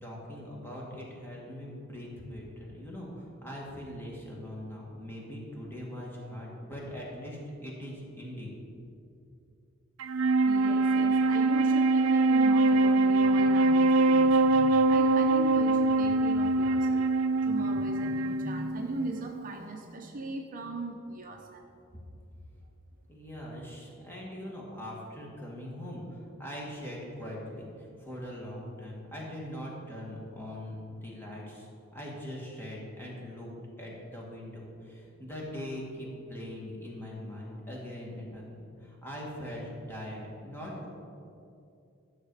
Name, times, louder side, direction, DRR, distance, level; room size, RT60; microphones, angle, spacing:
voice 1, 0.0-8.6 23.1-33.5 33.8-40.9, equal, 10° left, -4 dB, 2.1 m, -41 dB
Wind instrument woodwind instrument, 10.0-19.5, right 2 dB, 85° right, 0.4 m, -24 dB
voice 2, 10.5-17.1 17.4-21.7, right 2 dB, 40° right, 2 dB, 0.7 m, -38 dB
12.5 x 6.6 x 4.8 m, 2.6 s
head